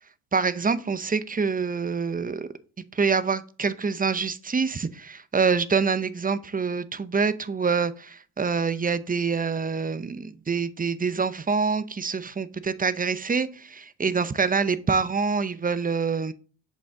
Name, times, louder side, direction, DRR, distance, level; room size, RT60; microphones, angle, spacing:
voice 1, 0.3-2.5 2.9-16.3, right 5 dB, 15° right, 14 dB, 0.7 m, -26 dB
6.6 x 5.4 x 3.7 m, 0.38 s
supercardioid pair, 85°, 50 cm